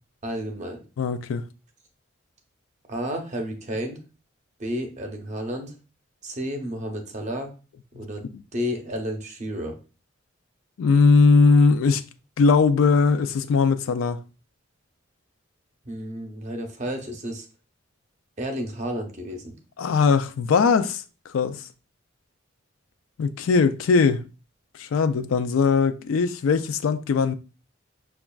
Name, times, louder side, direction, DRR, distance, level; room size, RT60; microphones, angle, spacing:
voice 1, 0.2-0.8 2.9-4.0 4.6-5.7 6.2-7.5 7.9-8.2 8.5-9.8 15.8-17.5 18.4-19.5, equal, 35° right, 0.7 m, -31 dB
voice 2, 1.0-1.4 8.3-8.4 10.8-12.0 12.4-14.2 19.8-21.0 21.3-21.6 23.2-24.2 24.8-27.3, left 4 dB, 85° left, 0.4 m, -20 dB
5.9 x 2.4 x 2.3 m
head